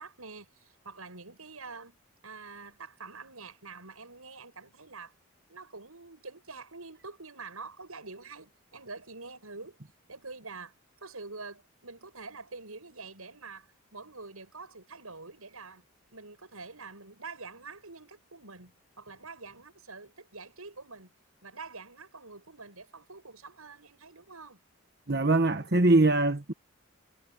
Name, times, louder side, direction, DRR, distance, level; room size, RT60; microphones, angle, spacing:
voice 1, 0.0-2.0 2.2-5.1 5.5-9.8 10.1-10.7 11.0-15.8 16.1-21.1 21.4-24.6, right 4 dB, 85° right, 7.6 m, -46 dB
voice 2, 25.1-26.5, right 2 dB, 50° right, 1.3 m, -22 dB
head